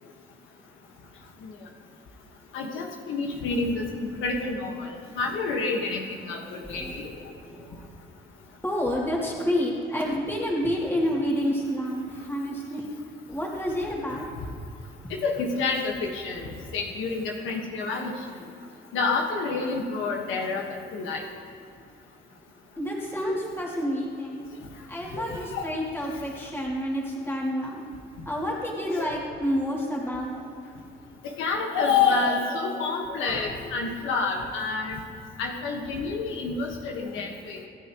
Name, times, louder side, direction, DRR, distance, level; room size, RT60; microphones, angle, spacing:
voice 1, 2.5-3.8 4.2-4.9 5.1-7.1 14.1-14.2 15.1-18.1 18.9-21.2 25.1-25.8 29.0-29.1 31.2-35.0 35.4-37.6, left 4 dB, 90° left, 1 dB, 1.6 m, -28 dB
voice 2, 5.3-5.6 6.6-7.9 8.6-12.9 13.3-14.3 15.0-15.1 16.3-16.5 22.8-24.5 24.9-27.8 28.3-30.5, equal, 10° left, -4 dB, 2.8 m, -29 dB
24.5 x 9.7 x 3.1 m, 2.6 s
cardioid pair, 90°, 20 cm